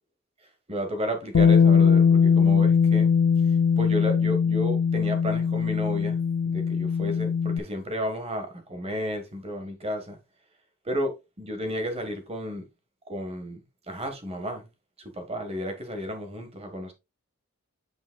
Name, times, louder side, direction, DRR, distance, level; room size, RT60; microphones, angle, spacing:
voice 1, 0.7-3.1 3.8-6.2 6.5-10.2 10.8-12.6 13.1-13.6 13.9-14.7 15.1-16.9, equal, 25° right, 1.4 m, -32 dB
Bass guitar, 1.3-7.6, left 6 dB, 55° left, 0.4 m, -21 dB
8.7 x 5.1 x 2.3 m
head